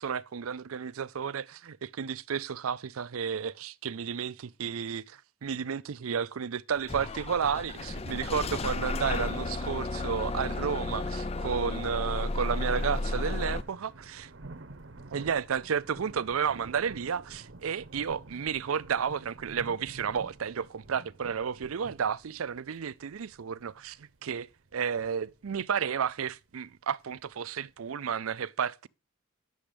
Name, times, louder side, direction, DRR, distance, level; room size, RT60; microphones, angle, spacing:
voice 1, 0.0-14.3 15.1-24.5 24.7-28.9, right 7 dB, 85° right, 0.5 m, -32 dB
Bus / Engine starting, 6.9-13.6, left 2 dB, 30° left, 0.5 m, -33 dB
sound 1, 12.0-27.9, right 2 dB, 60° right, 0.8 m, -50 dB
10.0 x 7.1 x 5.0 m
head